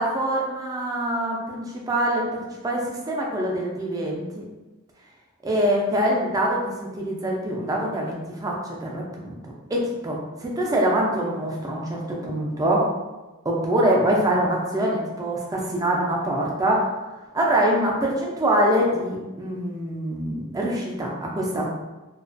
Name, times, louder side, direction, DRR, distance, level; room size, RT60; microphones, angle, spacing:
voice 1, 0.0-4.4 5.4-8.5 8.8-12.9 13.4-16.9 17.3-21.7, right 1 dB, 15° right, -2 dB, 0.3 m, -24 dB
2.4 x 2.2 x 2.4 m, 1.1 s
head